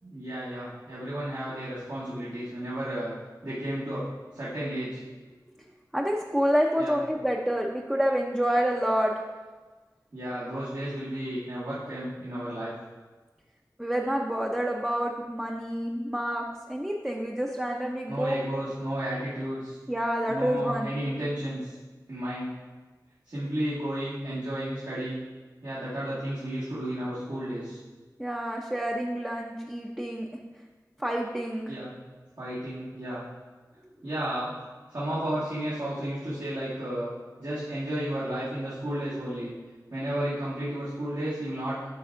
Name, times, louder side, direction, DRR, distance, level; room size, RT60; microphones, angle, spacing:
voice 1, 0.0-3.1 3.4-4.1 4.3-5.0 6.8-6.9 10.1-12.7 18.1-19.8 20.3-21.8 22.1-22.5 23.3-25.2 25.6-27.8 31.7-31.9 32.4-33.2 34.0-34.5 34.9-37.1 37.4-39.5 39.9-41.9, right 1 dB, 75° right, -12 dB, 1.9 m, -32 dB
voice 2, 5.9-9.1 13.8-18.7 19.9-20.9 28.2-30.3 31.0-31.7, equal, 10° right, -1 dB, 0.6 m, -28 dB
9.3 x 5.2 x 2.6 m, 1.3 s
wide cardioid pair, 40°, 7 cm